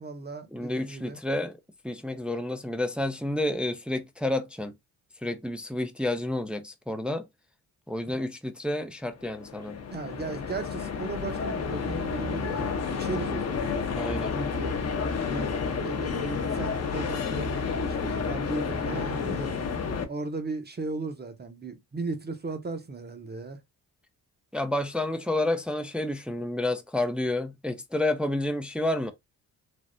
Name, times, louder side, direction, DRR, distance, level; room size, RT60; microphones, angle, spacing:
voice 1, 0.0-1.2 9.9-13.7 14.3-14.8 15.3-15.6 15.8-19.5 20.1-23.6, right 3 dB, 25° right, 0.8 m, -36 dB
voice 2, 0.5-1.5 1.8-4.7 5.2-7.2 7.9-9.8 10.3-10.4 13.9-14.3 24.5-29.1, left 1 dB, 5° right, 0.4 m, -30 dB
sound 1, 9.2-20.0, left 5 dB, 40° left, 0.7 m, -30 dB
3.4 x 2.0 x 2.5 m
cardioid pair, 65°, 39 cm